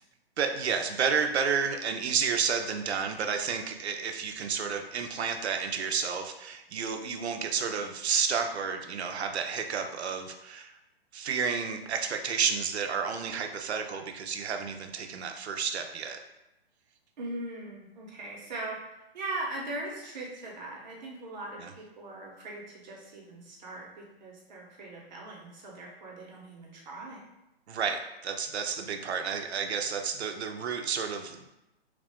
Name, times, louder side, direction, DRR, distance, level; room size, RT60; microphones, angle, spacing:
voice 1, 0.4-10.7 11.1-16.2 21.6-21.7 27.7-31.5, right 6 dB, 90° right, 5 dB, 0.6 m, -31 dB
voice 2, 7.0-7.4 17.2-18.8 19.1-27.2, right 2 dB, 45° right, -3 dB, 1.0 m, -40 dB
3.2 x 2.5 x 3.5 m, 0.93 s
hypercardioid pair, 165°, 32 cm